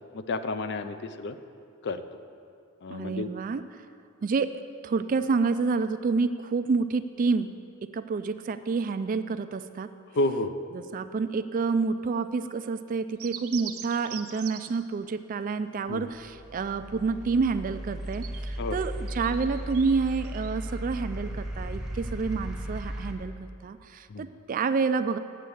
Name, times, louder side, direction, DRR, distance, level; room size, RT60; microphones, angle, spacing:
voice 1, 0.1-1.4 1.8-2.0 2.8-3.3 10.1-10.5 15.9-16.1 18.6-18.8 24.1-24.2, left 2 dB, 50° left, 11 dB, 0.4 m, -30 dB
voice 2, 2.9-3.8 4.2-4.5 4.8-9.9 10.7-25.2, right 4 dB, 40° right, 12 dB, 0.3 m, -28 dB
sound 1, 13.2-14.8 17.9-20.5, right 10 dB, 70° right, 0.7 m, -42 dB
sound 2, 15.9-23.1, equal, 5° right, 0.9 m, -36 dB
8.2 x 7.4 x 7.1 m, 2.4 s
head